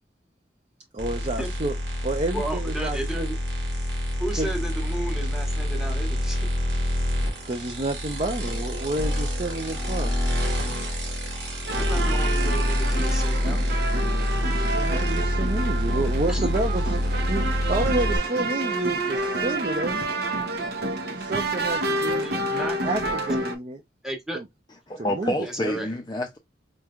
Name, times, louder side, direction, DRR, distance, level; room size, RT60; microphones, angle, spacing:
voice 1, 0.9-1.7 2.0-3.3 4.4-4.5 7.4-10.2 14.7-17.0 17.3-20.1 21.2-22.3 22.8-23.8 24.3-24.4 25.1-25.3 25.6-25.7, right 2 dB, 35° right, 0.5 m, -29 dB
sound 1, 1.0-18.2, equal, 80° right, 1.8 m, -26 dB
voice 2, 2.3-3.4 4.2-6.5 11.7-13.6 16.3-16.5 22.0-22.8 24.0-24.4 25.4-25.9, right 1 dB, 5° right, 1.0 m, -33 dB
sound 2, 11.7-23.6, right 2 dB, 65° right, 0.8 m, -29 dB
voice 3, 24.9-26.4, left 1 dB, 25° left, 0.5 m, -28 dB
4.4 x 3.2 x 2.4 m
head